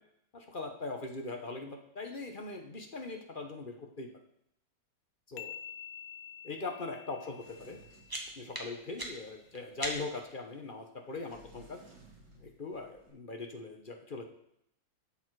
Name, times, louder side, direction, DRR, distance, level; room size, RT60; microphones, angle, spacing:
voice 1, 0.3-4.1 5.3-5.5 6.4-7.8 8.4-11.8 12.4-14.2, left 3 dB, 35° left, 4 dB, 0.9 m, -41 dB
sound 1, 5.4-8.9, left 9 dB, 75° left, 1.2 m, -48 dB
Sliding door, 7.4-8.9 11.1-13.1, right 2 dB, 90° right, 4.6 m, -58 dB
sound 2, 7.7-10.3, right 1 dB, 15° right, 1.2 m, -42 dB
11.5 x 7.2 x 4.7 m, 0.76 s
omnidirectional pair, 2.1 m